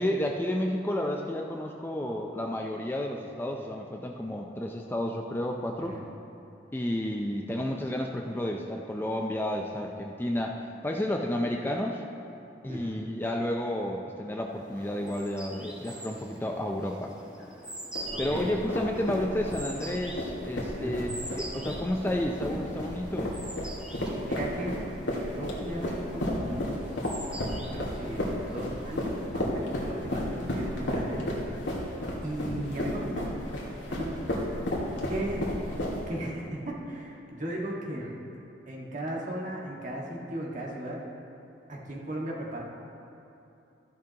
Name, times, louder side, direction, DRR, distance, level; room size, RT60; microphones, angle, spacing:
voice 1, 0.0-6.0 6.7-12.0 12.6-17.1 18.2-21.1 21.4-23.4, left 1 dB, 10° left, 1 dB, 0.5 m, -31 dB
voice 2, 12.7-13.0 18.1-18.5 20.8-21.1 24.3-24.9 25.3-26.8 27.7-31.3 32.2-33.3 33.9-34.5 35.1-35.5 36.1-38.1 38.7-41.0 41.7-42.6, right 1 dB, 45° right, -3 dB, 1.6 m, -36 dB
sound 1, 14.5-29.5, right 1 dB, 5° right, 2.3 m, -45 dB
sound 2, 17.9-36.2, left 1 dB, 90° left, 2.0 m, -33 dB
14.0 x 10.5 x 2.9 m, 2.8 s
head